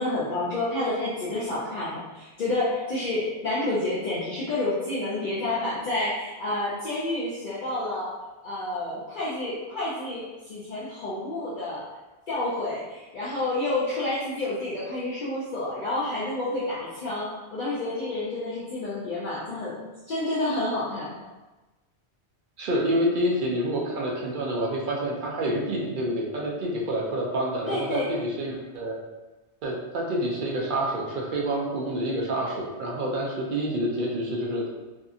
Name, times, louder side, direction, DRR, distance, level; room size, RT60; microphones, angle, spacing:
voice 1, 0.0-8.1 8.4-11.8 12.3-21.2 27.7-28.1, left 2 dB, 55° left, -9 dB, 0.7 m, -29 dB
voice 2, 22.6-29.0 29.6-34.7, right 1 dB, 60° right, -2 dB, 0.6 m, -28 dB
2.7 x 2.6 x 2.4 m, 1.1 s
omnidirectional pair, 1.1 m